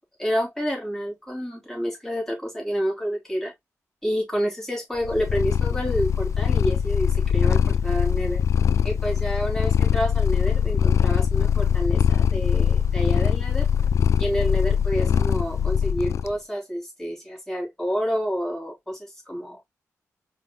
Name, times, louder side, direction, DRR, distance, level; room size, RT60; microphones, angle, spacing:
voice 1, 0.2-3.5 4.0-8.4 8.8-13.7 14.2-19.6, equal, 10° left, 2.9 m, -28 dB
Purr, 5.0-16.3, left 8 dB, 65° left, 0.3 m, -22 dB
4.6 x 3.7 x 2.2 m
wide cardioid pair, 100°, 6 cm